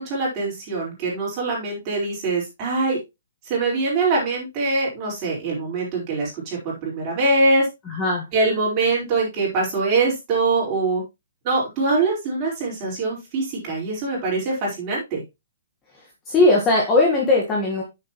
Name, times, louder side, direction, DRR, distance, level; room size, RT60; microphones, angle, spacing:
voice 1, 0.0-3.0 3.5-7.7 8.3-11.0 11.4-15.2, right 3 dB, 25° right, -3 dB, 4.5 m, -23 dB
voice 2, 7.9-8.2 16.3-17.8, left 2 dB, 15° left, -2 dB, 1.5 m, -18 dB
8.8 x 6.8 x 3.0 m, 0.22 s
hypercardioid pair, 165°, 0 cm